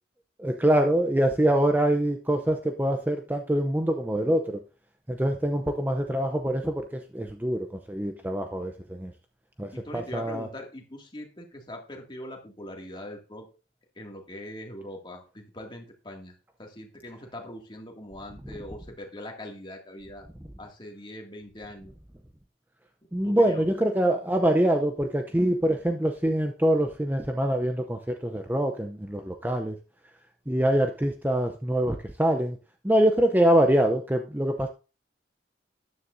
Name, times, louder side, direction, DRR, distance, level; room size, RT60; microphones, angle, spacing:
voice 1, 0.4-4.6 5.1-9.1 9.6-10.5 23.1-29.8 30.5-32.6 32.8-34.7, right 1 dB, 10° right, 5 dB, 0.6 m, -24 dB
voice 2, 9.7-13.5 14.0-16.3 16.6-20.2 20.6-21.9 23.2-23.6, left 1 dB, 25° left, 1 dB, 2.2 m, -42 dB
13.0 x 9.6 x 2.6 m, 0.34 s
head